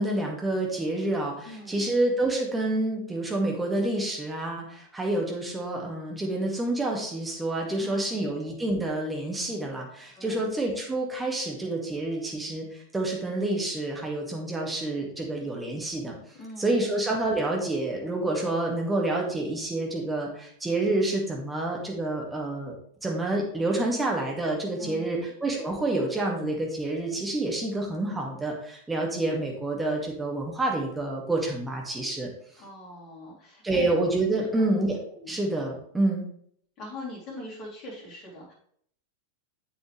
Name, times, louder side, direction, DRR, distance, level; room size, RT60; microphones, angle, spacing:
voice 1, 0.0-16.2 16.6-22.7 23.0-32.3 33.6-35.0 35.3-36.2, right 2 dB, 10° right, -1 dB, 2.1 m, -28 dB
voice 2, 1.4-1.9 7.8-8.3 10.1-10.5 16.4-16.8 24.8-25.3 32.6-33.9 35.1-35.4 36.8-38.5, left 1 dB, 35° left, -3 dB, 3.3 m, -42 dB
7.8 x 7.1 x 3.4 m, 0.63 s
figure-of-eight pair, 90°, 0 cm